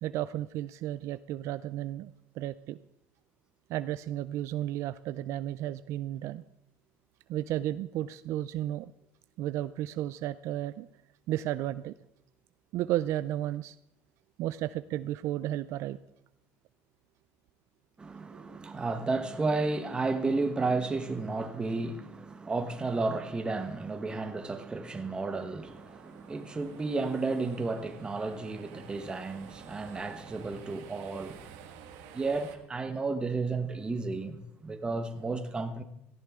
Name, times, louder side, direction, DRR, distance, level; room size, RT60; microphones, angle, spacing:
voice 1, 0.0-2.8 3.7-6.4 7.3-8.9 9.4-10.9 11.3-11.9 12.7-13.8 14.4-16.0 18.3-18.4, right 13 dB, 60° right, 0.4 m, -33 dB
voice 2, 18.0-31.5 32.1-35.8, right 3 dB, 15° right, 1.2 m, -32 dB
sound 1, 25.6-32.6, right 8 dB, 85° right, 1.7 m, -51 dB
17.5 x 14.0 x 3.7 m
cardioid pair, 150°, 6 cm